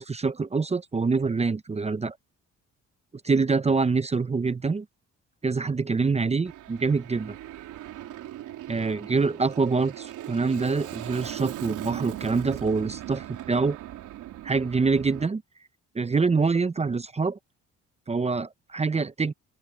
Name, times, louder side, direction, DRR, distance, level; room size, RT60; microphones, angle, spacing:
voice 1, 0.0-2.2 3.2-4.9 5.4-7.4 8.7-13.8 14.4-15.4 15.9-17.4 18.1-19.3, right 4 dB, 20° right, 0.7 m, -25 dB
Aircraft, 6.4-15.3, right 13 dB, 85° right, 3.7 m, -39 dB
cardioid pair, 90°, 30 cm